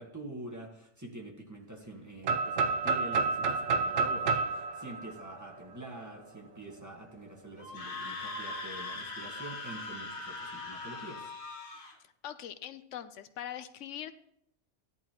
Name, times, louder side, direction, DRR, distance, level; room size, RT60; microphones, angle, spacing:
voice 1, 0.0-11.3, right 1 dB, 15° right, 0 dB, 1.6 m, -46 dB
sound 1, 2.2-6.1, right 4 dB, 80° right, 1.0 m, -30 dB
Screaming, 7.6-12.0, left 2 dB, 50° left, 1.3 m, -40 dB
voice 2, 12.2-14.1, left 10 dB, 85° left, 12 dB, 1.0 m, -42 dB
14.5 x 11.0 x 3.0 m, 0.75 s
omnidirectional pair, 1.2 m